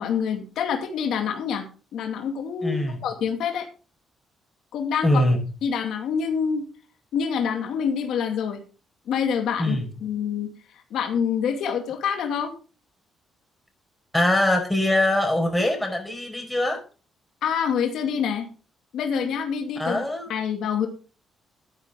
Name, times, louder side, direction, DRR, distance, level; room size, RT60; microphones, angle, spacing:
voice 1, 0.0-1.6 1.9-3.7 4.7-5.3 5.6-6.6 7.1-8.6 9.1-10.5 10.9-12.5 17.4-18.5 18.9-20.0 20.3-20.9, left 7 dB, 75° left, 4 dB, 2.4 m, -26 dB
voice 2, 2.6-3.0 5.0-5.4 9.6-9.8 14.1-16.8 19.8-20.3, left 1 dB, 5° left, 3 dB, 5.2 m, -22 dB
13.5 x 9.8 x 3.8 m, 0.36 s
cardioid pair, 90°, 0 cm